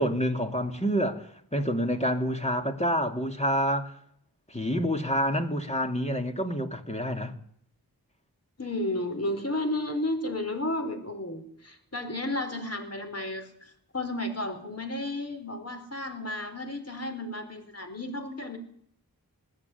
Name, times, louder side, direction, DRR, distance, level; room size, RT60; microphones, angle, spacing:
voice 1, 0.0-3.9 4.5-7.3, equal, 15° left, 3.0 m, -28 dB
voice 2, 8.6-18.6, left 1 dB, 40° left, 4.7 m, -33 dB
21.0 x 15.0 x 9.6 m
wide cardioid pair, 40°, 37 cm